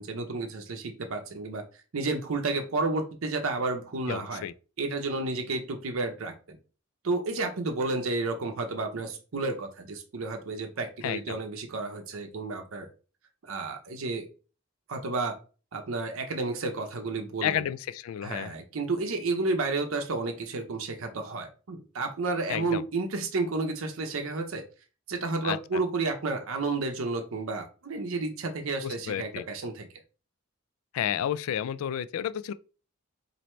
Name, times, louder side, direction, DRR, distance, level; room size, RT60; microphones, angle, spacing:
voice 1, 0.0-1.6 1.9-4.4 4.8-6.6 7.0-12.9 13.4-14.3 14.9-15.4 15.7-17.7 18.2-24.6 25.1-29.9, right 3 dB, 80° right, 0.6 m, -31 dB
voice 2, 4.1-4.5 11.0-11.4 17.4-18.5 22.5-22.8 25.4-25.6 28.8-29.4 30.9-32.5, left 10 dB, 90° left, 0.3 m, -31 dB
3.1 x 2.6 x 4.3 m
head